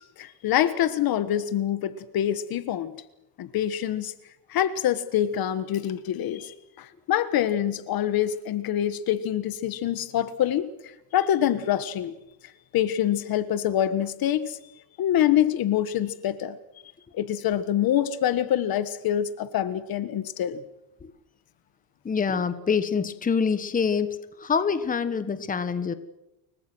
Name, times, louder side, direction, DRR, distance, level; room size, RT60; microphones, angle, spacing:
voice 1, 0.0-2.9 3.4-4.1 4.5-10.7 11.1-12.2 12.7-14.6 15.0-16.6 17.1-20.6, left 11 dB, 50° left, 13 dB, 1.5 m, -25 dB
voice 2, 22.0-25.9, left 6 dB, 20° left, 11 dB, 1.4 m, -26 dB
29.0 x 23.0 x 6.3 m, 0.89 s
cardioid pair, 150°, 45 cm